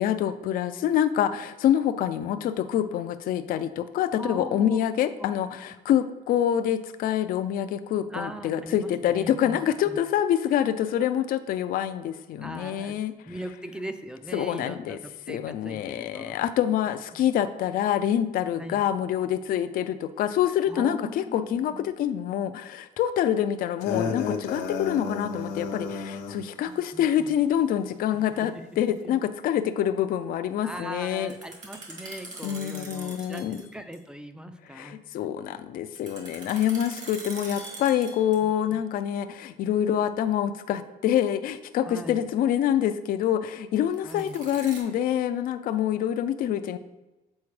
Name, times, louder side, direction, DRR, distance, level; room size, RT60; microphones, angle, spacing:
voice 1, 0.0-13.1 14.3-15.0 15.3-31.3 32.4-33.6 34.7-46.8, left 10 dB, 60° left, 10 dB, 0.4 m, -26 dB
voice 2, 4.2-5.6 8.1-10.0 12.4-13.0 13.3-16.4 18.6-18.8 20.7-22.3 26.6-27.4 28.3-28.6 29.0-29.1 30.6-35.0 41.8-42.3 44.0-44.4, right 1 dB, 5° right, 8 dB, 0.4 m, -40 dB
sound 1, 23.8-26.4, left 5 dB, 90° left, 0.8 m, -31 dB
sound 2, 31.2-33.7 33.9-34.0 35.9-38.6 43.9-44.8, right 2 dB, 45° right, 1.7 m, -42 dB
7.1 x 4.2 x 3.2 m, 1.0 s
cardioid pair, 110°, 17 cm